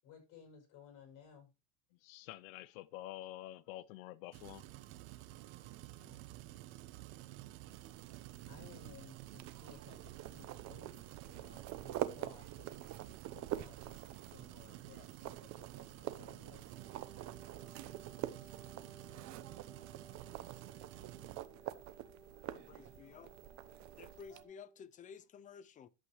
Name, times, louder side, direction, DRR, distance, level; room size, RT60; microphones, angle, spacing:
voice 1, 0.0-1.5 6.0-6.2 8.5-16.7, left 5 dB, 50° left, 6.4 m, -59 dB
voice 2, 2.0-4.6, left 15 dB, 90° left, 0.7 m, -48 dB
sound 1, 4.3-21.4, right 16 dB, 70° right, 1.1 m, -52 dB
sound 2, 7.7-24.4, right 13 dB, 45° right, 0.9 m, -47 dB
Wind instrument woodwind instrument, 16.7-24.9, right 3 dB, 5° right, 4.1 m, -60 dB
voice 3, 22.5-23.3 24.0-25.9, left 7 dB, 20° left, 0.4 m, -53 dB
11.5 x 7.7 x 3.1 m
cardioid pair, 145°, 40 cm